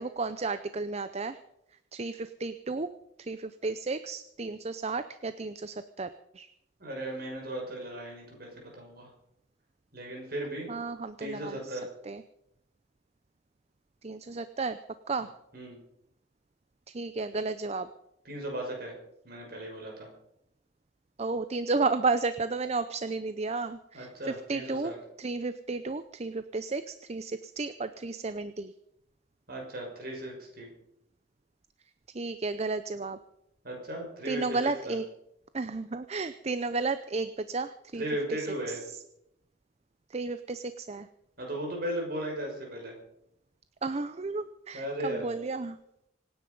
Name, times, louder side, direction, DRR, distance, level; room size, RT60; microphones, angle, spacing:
voice 1, 0.0-1.4 1.9-2.9 3.2-6.5 10.7-12.2 14.0-14.8 15.1-15.3 16.9-17.9 21.2-28.7 32.1-33.2 34.3-35.0 35.5-38.0 38.3-39.0 40.1-41.1 43.8-45.8, right 3 dB, 35° right, 12 dB, 0.6 m, -33 dB
voice 2, 6.8-9.1 9.9-10.7 11.2-11.8 15.5-15.8 18.2-18.9 19.2-20.1 23.9-25.0 29.5-30.7 33.6-35.0 38.0-38.8 41.4-42.9 44.7-45.3, right 1 dB, 55° right, 0 dB, 6.1 m, -36 dB
25.5 x 9.7 x 5.4 m, 0.81 s
head